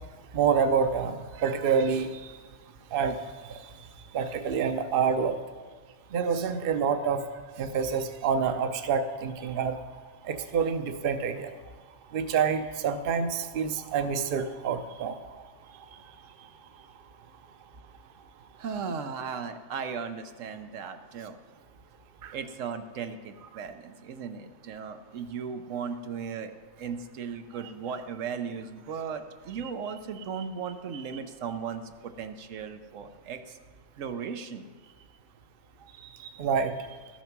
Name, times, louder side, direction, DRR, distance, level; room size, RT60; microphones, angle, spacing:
voice 1, 0.3-2.3 2.9-3.2 3.4-3.6 4.1-5.4 6.1-7.2 7.6-9.8 10.2-11.5 12.1-15.2 22.2-22.3 30.9-31.0 36.2-36.7, right 6 dB, 55° right, 8 dB, 0.8 m, -27 dB
voice 2, 18.6-21.4 22.3-33.6 34.0-34.6, right 6 dB, 85° right, 7 dB, 1.1 m, -37 dB
13.0 x 7.2 x 5.9 m, 1.4 s
omnidirectional pair, 1.3 m